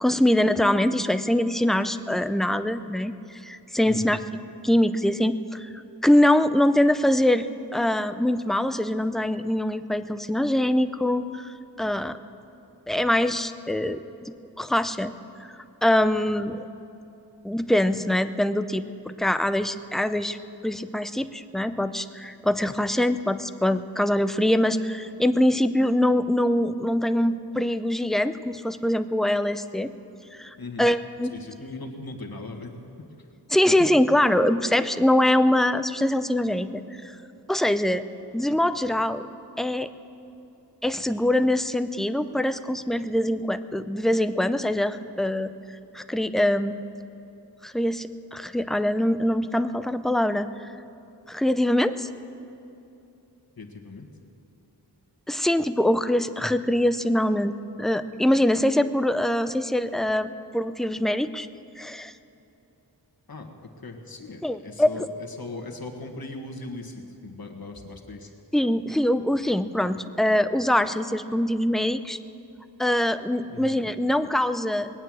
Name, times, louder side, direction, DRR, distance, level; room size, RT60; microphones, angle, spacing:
voice 1, 0.0-4.2 4.6-5.7 6.0-7.5 7.7-11.5 11.8-12.2 12.9-15.1 15.8-16.7 17.4-20.4 20.6-29.9 30.3-31.3 33.5-37.2 37.5-38.0 38.3-39.2 39.6-39.9 40.8-45.5 45.9-46.8 47.6-50.7 51.3-52.1 55.3-61.5 61.8-62.1 64.4-65.1 68.5-72.2 72.8-74.9, left 1 dB, ahead, 11 dB, 0.5 m, -23 dB
voice 2, 30.6-30.9 31.3-32.7 33.8-33.9 53.6-54.1 63.3-68.3 73.5-73.7, left 2 dB, 60° left, 2 dB, 1.7 m, -38 dB
20.5 x 9.1 x 7.6 m, 2.8 s
wide cardioid pair, 65°, 41 cm